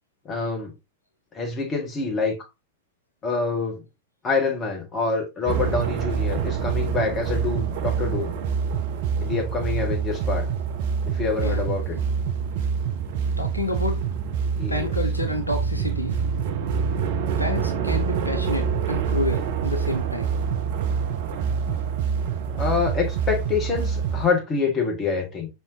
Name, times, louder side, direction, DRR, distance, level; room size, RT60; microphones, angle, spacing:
voice 1, 0.3-0.7 1.3-2.4 3.2-3.8 4.2-8.3 9.2-10.5 11.1-12.0 14.6-14.9 17.8-17.9 21.7-21.8 22.6-25.5, left 4 dB, 25° left, 1.7 m, -26 dB
sound 1, 5.5-24.3, right 6 dB, 50° right, 0.6 m, -26 dB
voice 2, 13.4-14.0 14.7-16.2 17.4-20.3, left 1 dB, 85° left, 0.7 m, -29 dB
5.3 x 3.5 x 2.8 m
figure-of-eight pair, 90°, 0 cm